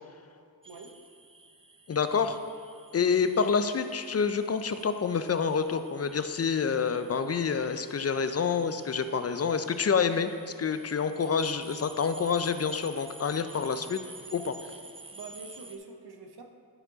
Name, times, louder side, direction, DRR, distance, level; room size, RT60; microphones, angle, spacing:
sound 1, 0.6-15.8, right 2 dB, 15° right, 0.5 m, -51 dB
voice 1, 0.7-1.0 15.1-16.4, right 4 dB, 90° right, 4 dB, 0.8 m, -45 dB
voice 2, 1.9-2.4 2.9-10.3 10.6-14.0 14.3-14.5, left 6 dB, 40° left, 10 dB, 0.4 m, -27 dB
10.0 x 4.5 x 3.9 m, 2.4 s
wide cardioid pair, 70°, 37 cm